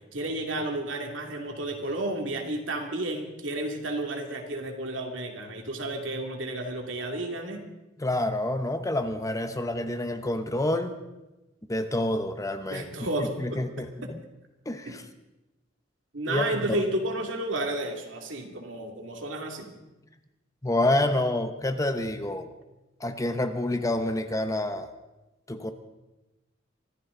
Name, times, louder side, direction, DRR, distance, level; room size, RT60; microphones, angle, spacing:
voice 1, 0.1-7.6 12.7-13.6 14.0-14.1 14.9-15.0 16.1-19.7, right 1 dB, 75° right, 3 dB, 2.6 m, -32 dB
voice 2, 8.0-11.0 11.7-12.9 13.2-14.2 14.7-15.0 16.3-16.8 20.6-22.5 23.0-24.9 25.5-25.7, left 1 dB, 15° left, 9 dB, 0.9 m, -28 dB
25.0 x 14.0 x 3.9 m, 1.0 s
head